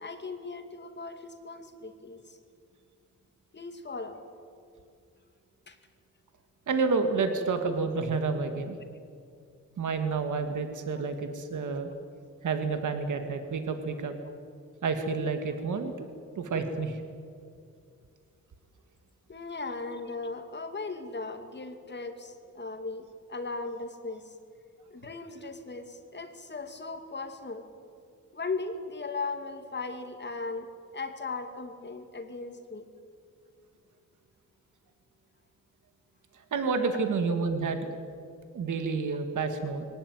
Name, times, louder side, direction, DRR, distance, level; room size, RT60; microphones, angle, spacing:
voice 1, 0.0-2.4 3.5-4.2 5.7-5.8 19.3-24.3 24.9-27.6 28.3-30.7 30.9-32.9, left 3 dB, 35° left, 6 dB, 2.4 m, -38 dB
voice 2, 6.7-8.8 9.8-11.9 12.4-14.1 14.8-16.1 16.4-17.0 36.5-37.9 38.5-39.8, right 4 dB, 80° right, 6 dB, 2.0 m, -29 dB
23.0 x 18.5 x 9.5 m, 2.4 s
wide cardioid pair, 115°, 30 cm